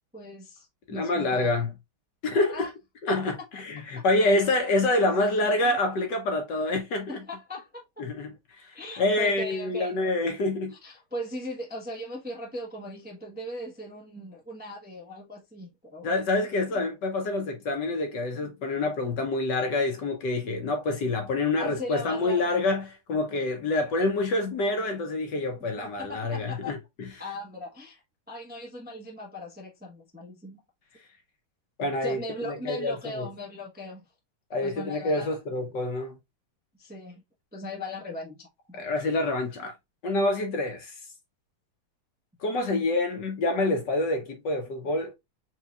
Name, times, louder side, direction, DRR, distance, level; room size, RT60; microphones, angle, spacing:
voice 1, 0.1-1.5 2.5-2.7 4.0-4.1 4.9-5.1 5.6-5.8 7.1-7.8 8.7-10.0 10.8-16.1 16.7-16.8 21.6-22.6 25.8-26.7 27.2-28.0 28.3-30.6 32.0-34.0 34.6-35.4 36.7-37.2 37.5-38.8, left 1 dB, 5° right, 0.8 m, -39 dB
voice 2, 0.9-1.7 2.2-2.7 3.0-7.1 8.0-10.7 16.0-27.1 31.8-33.3 34.5-36.2 38.8-39.7 40.0-40.9 42.4-45.1, left 2 dB, 60° left, 1.5 m, -27 dB
4.5 x 3.9 x 2.4 m
omnidirectional pair, 2.3 m